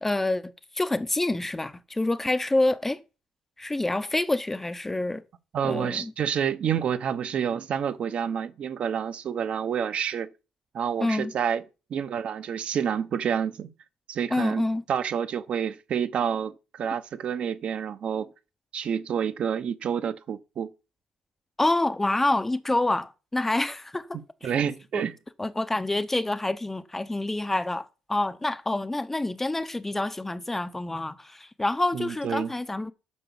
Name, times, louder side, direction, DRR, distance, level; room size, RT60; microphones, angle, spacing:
voice 1, 0.0-3.0 3.6-5.2 5.6-6.1 11.0-11.3 14.3-14.8 21.6-24.1 24.4-24.5 24.9-25.0 25.4-32.9, left 2 dB, 10° left, 0.6 m, -27 dB
voice 2, 5.5-10.3 10.7-11.6 11.9-13.7 14.1-18.3 18.7-20.7 24.4-25.1 31.9-32.5, right 8 dB, 45° right, 0.8 m, -28 dB
9.6 x 6.0 x 7.0 m
cardioid pair, 155°, 3 cm